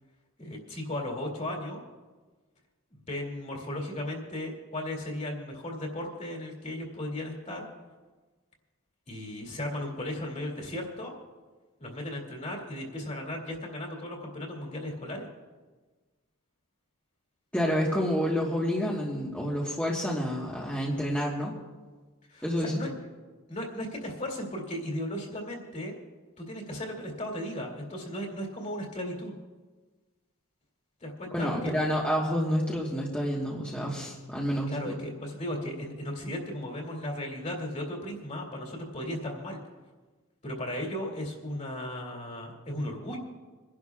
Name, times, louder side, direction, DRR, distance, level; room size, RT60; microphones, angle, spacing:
voice 1, 0.4-1.8 3.1-7.7 9.1-11.1 11.8-15.3 22.3-22.9 23.5-26.0 26.4-29.4 31.0-31.9 34.7-39.6 40.4-43.2, left 1 dB, 35° left, 0 dB, 2.7 m, -36 dB
voice 2, 17.5-21.5 22.4-22.8 31.3-34.9, equal, 5° left, -5 dB, 1.4 m, -29 dB
28.0 x 11.5 x 2.4 m, 1.3 s
head